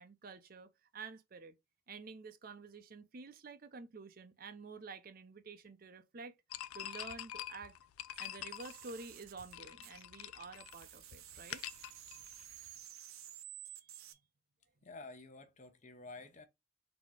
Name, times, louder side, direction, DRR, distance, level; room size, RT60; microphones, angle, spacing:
voice 1, 0.0-1.5 1.9-6.3 6.7-7.8 8.2-11.6 13.6-14.2, right 4 dB, 45° right, 0.5 m, -50 dB
sound 1, 6.5-12.8, left 12 dB, 90° left, 0.4 m, -47 dB
sound 2, 8.1-10.3 10.5-14.1, right 11 dB, 85° right, 0.7 m, -53 dB
voice 2, 14.8-16.5, left 3 dB, 35° left, 0.7 m, -51 dB
4.0 x 2.8 x 4.7 m
head